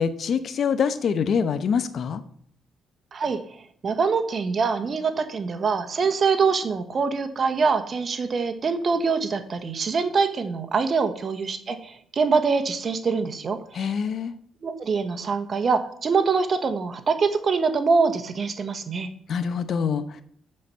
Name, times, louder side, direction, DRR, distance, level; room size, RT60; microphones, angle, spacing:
voice 1, 0.0-2.2 13.7-14.3 19.3-20.2, left 6 dB, 60° left, 12 dB, 0.8 m, -25 dB
voice 2, 3.8-13.9 14.6-19.1, right 5 dB, 45° right, 9 dB, 1.2 m, -24 dB
7.6 x 7.6 x 5.6 m, 0.62 s
cardioid pair, 90°, 0 cm